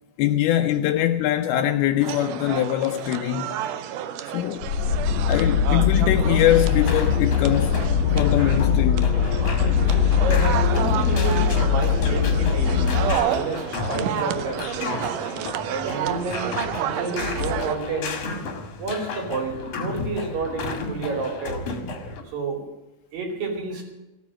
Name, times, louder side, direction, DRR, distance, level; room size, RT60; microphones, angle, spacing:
voice 1, 0.2-3.6 4.3-4.7 5.3-7.8 8.1-9.2, left 12 dB, 80° left, 2.5 m, -22 dB
sound 1, 2.0-17.8, right 10 dB, 80° right, 1.9 m, -31 dB
ambient hell, 4.6-13.1, left 7 dB, 65° left, 1.7 m, -21 dB
sound 2, 6.5-22.2, left 4 dB, 50° left, 2.4 m, -33 dB
voice 2, 10.2-13.0 13.2-15.0 15.7-18.2 18.8-21.6 22.3-22.7 23.1-23.8, right 3 dB, 60° right, 4.3 m, -30 dB
16.5 x 8.9 x 7.5 m
omnidirectional pair, 4.6 m